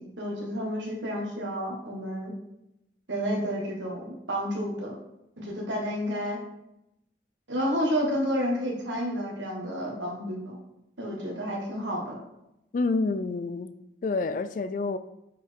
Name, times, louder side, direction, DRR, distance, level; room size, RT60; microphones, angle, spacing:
voice 1, 0.0-2.3 3.1-4.9 5.4-6.4 7.5-10.6 11.0-12.2, equal, 85° right, 1.7 m, -30 dB
voice 2, 12.7-13.7 14.0-15.0, left 3 dB, 45° left, 0.3 m, -28 dB
7.4 x 4.5 x 3.5 m
head